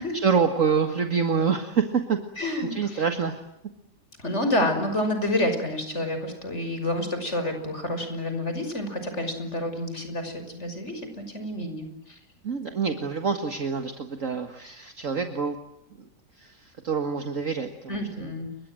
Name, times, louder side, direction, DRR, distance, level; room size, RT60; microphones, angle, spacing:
voice 1, 0.2-2.2 2.7-3.4 12.4-15.6 16.0-16.1 16.4-18.0, right 6 dB, 50° right, 6 dB, 2.1 m, -26 dB
voice 2, 2.4-3.1 4.2-12.2 17.9-18.5, left 1 dB, 40° left, 7 dB, 6.2 m, -29 dB
30.0 x 24.0 x 7.7 m, 0.76 s
omnidirectional pair, 1.8 m